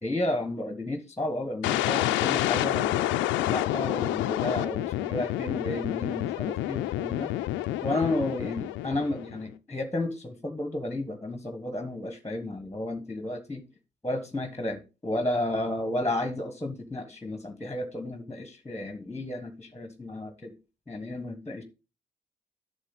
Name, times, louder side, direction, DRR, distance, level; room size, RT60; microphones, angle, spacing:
voice 1, 0.0-7.3 7.8-13.6 14.0-20.5 20.9-21.6, left 1 dB, 15° left, 1.3 m, -32 dB
sound 1, 1.6-9.5, left 14 dB, 85° left, 0.5 m, -28 dB
8.1 x 6.7 x 4.0 m
supercardioid pair, 60°, 19 cm